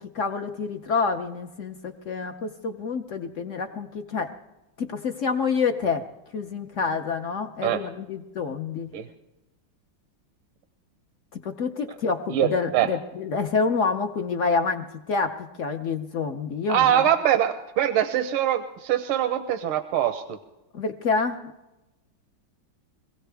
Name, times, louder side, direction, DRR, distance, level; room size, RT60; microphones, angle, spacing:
voice 1, 0.0-4.3 4.8-6.0 6.3-8.9 11.4-17.1 20.7-21.5, left 5 dB, 65° left, 6 dB, 0.7 m, -27 dB
voice 2, 12.3-12.9 16.7-20.4, right 10 dB, 90° right, 9 dB, 1.6 m, -23 dB
24.5 x 16.5 x 3.4 m, 0.98 s
omnidirectional pair, 2.3 m